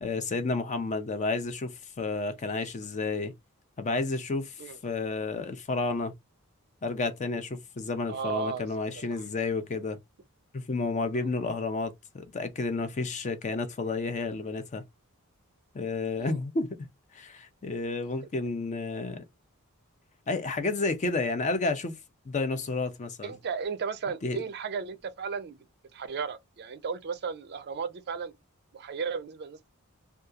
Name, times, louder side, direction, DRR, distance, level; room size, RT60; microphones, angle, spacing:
voice 1, 0.0-3.3 3.8-6.1 6.8-10.0 10.5-14.8 15.7-16.7 17.1-19.2 20.3-22.0 22.3-23.3 24.2-24.4, left 3 dB, 35° left, 0.5 m, -31 dB
voice 2, 8.1-8.7 8.9-9.2 11.1-11.2 16.2-16.4 23.2-25.6 25.9-28.3 28.7-29.7, right 5 dB, 50° right, 0.4 m, -35 dB
2.7 x 2.3 x 2.3 m
head